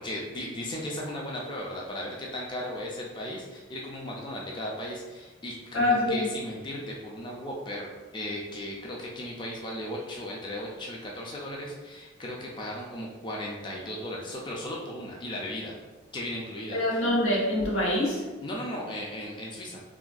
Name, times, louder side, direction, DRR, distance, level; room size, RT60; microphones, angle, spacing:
voice 1, 0.0-7.9 8.1-15.8 16.1-17.0 18.4-19.8, left 1 dB, 25° left, -2 dB, 0.3 m, -36 dB
voice 2, 5.7-6.3 16.7-18.2, left 1 dB, 90° left, -4 dB, 0.9 m, -25 dB
3.6 x 2.2 x 2.4 m, 1.2 s
head